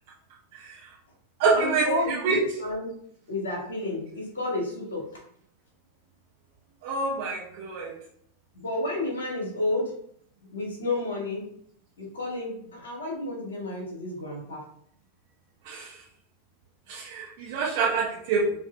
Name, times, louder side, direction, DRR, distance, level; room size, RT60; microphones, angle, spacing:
voice 1, 0.5-0.9 1.4-2.4 6.8-7.9 15.6-16.0 16.9-18.5, right 4 dB, 50° right, -4 dB, 0.8 m, -27 dB
voice 2, 1.5-2.9 3.3-5.0 8.5-9.9 10.5-11.4 12.0-14.6, left 2 dB, 65° left, -1 dB, 1.6 m, -31 dB
4.3 x 2.9 x 3.3 m, 0.66 s
figure-of-eight pair, 90°, 0 cm